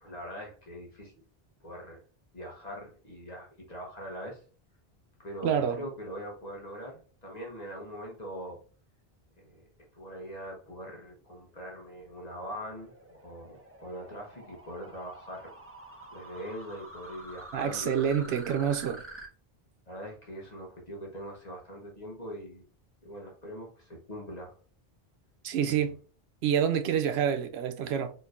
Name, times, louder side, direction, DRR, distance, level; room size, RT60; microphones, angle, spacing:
voice 1, 0.0-1.1 1.6-2.0 2.3-4.4 5.2-8.6 9.4-9.7 9.9-15.5 16.1-18.7 19.9-22.7 23.0-24.5 25.6-25.9, equal, 45° left, 1.1 m, -42 dB
voice 2, 5.4-5.8 17.5-19.0 25.4-26.0 26.4-28.1, right 8 dB, 90° right, 0.9 m, -27 dB
sound 1, 11.2-19.3, right 1 dB, 15° right, 0.6 m, -48 dB
4.5 x 3.1 x 2.5 m
omnidirectional pair, 1.0 m